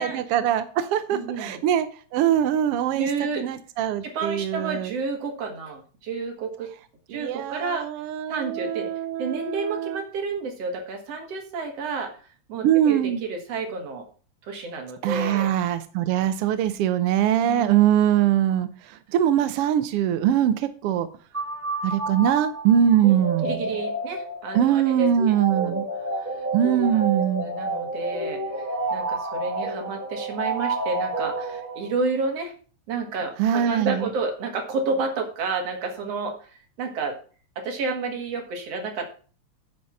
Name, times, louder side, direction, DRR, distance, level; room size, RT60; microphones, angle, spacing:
voice 1, 0.0-4.9 7.1-10.0 12.6-13.2 15.0-21.1 21.8-23.7 24.5-25.8 26.5-27.5 33.4-34.1, right 10 dB, 75° right, 11 dB, 1.4 m, -22 dB
voice 2, 1.1-1.6 3.0-3.4 4.0-6.7 7.1-7.9 8.3-8.9 9.2-12.1 12.5-14.1 14.4-15.5 17.4-17.8 23.4-25.8 26.1-26.3 26.7-32.5 32.9-36.5 36.8-37.2 37.6-39.1, right 4 dB, 60° right, 3 dB, 2.8 m, -30 dB
sound 1, 21.3-32.1, right 2 dB, 5° right, 2.3 m, -30 dB
9.5 x 5.2 x 7.0 m, 0.40 s
omnidirectional pair, 3.3 m